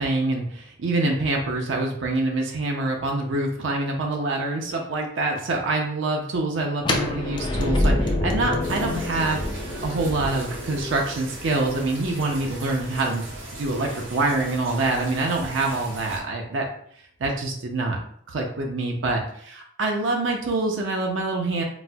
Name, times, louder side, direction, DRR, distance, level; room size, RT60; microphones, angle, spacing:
voice 1, 0.0-13.2 13.5-16.7 17.2-18.0 18.3-21.6, right 2 dB, 65° right, 1 dB, 0.5 m, -26 dB
sound 1, 6.8-12.7, left 1 dB, 25° left, 0.4 m, -27 dB
sound 2, 8.6-16.2, right 1 dB, 85° right, 1.1 m, -37 dB
4.1 x 2.1 x 2.2 m, 0.64 s
head